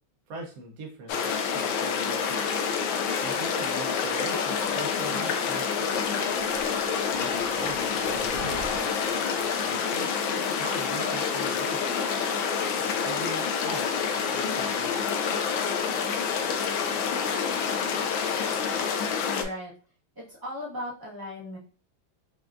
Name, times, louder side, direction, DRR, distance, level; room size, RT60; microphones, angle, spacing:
voice 1, 0.3-2.5 3.2-6.2 7.1-8.9 9.6-12.0 12.8-14.9, right 2 dB, 60° right, 0 dB, 1.0 m, -41 dB
sound 1, 1.1-19.4, left 6 dB, 80° left, 1.4 m, -28 dB
sound 2, 6.3-9.7, right 2 dB, 90° right, 1.6 m, -45 dB
voice 2, 19.2-19.7 20.1-21.6, left 1 dB, 15° right, -6 dB, 1.2 m, -37 dB
5.7 x 2.3 x 2.5 m, 0.42 s
omnidirectional pair, 2.2 m